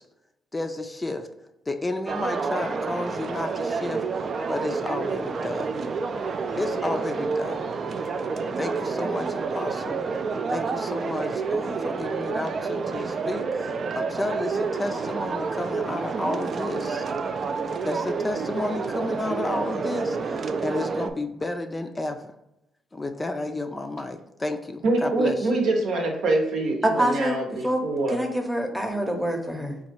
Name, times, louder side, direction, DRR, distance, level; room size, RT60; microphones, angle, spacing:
voice 1, 0.5-1.3 1.7-5.7 6.6-7.6 8.6-10.0 10.5-17.0 17.9-22.3 22.9-25.5, left 2 dB, 20° left, 6 dB, 0.4 m, -32 dB
sound 1, 2.1-21.1, right 4 dB, 50° right, 0.3 m, -29 dB
voice 2, 24.8-28.2, right 2 dB, 75° right, 2 dB, 0.8 m, -24 dB
voice 3, 26.8-27.4 27.6-27.8 28.1-29.8, right 1 dB, ahead, 3 dB, 0.7 m, -25 dB
4.0 x 2.3 x 4.4 m, 0.88 s
cardioid pair, 90°, 0 cm